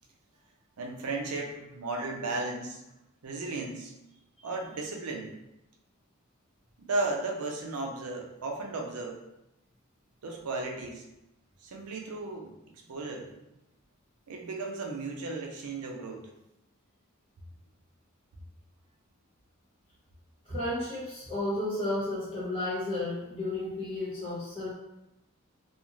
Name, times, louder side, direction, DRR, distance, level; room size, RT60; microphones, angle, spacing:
voice 1, 0.8-2.8 3.2-3.9 4.4-5.3 6.8-9.2 10.2-11.0 11.6-12.5 12.9-13.3 14.3-16.3, right 3 dB, 85° right, 2 dB, 0.5 m, -35 dB
voice 2, 20.4-24.7, left 1 dB, 25° left, -8 dB, 1.1 m, -33 dB
2.4 x 2.4 x 3.0 m, 0.89 s
head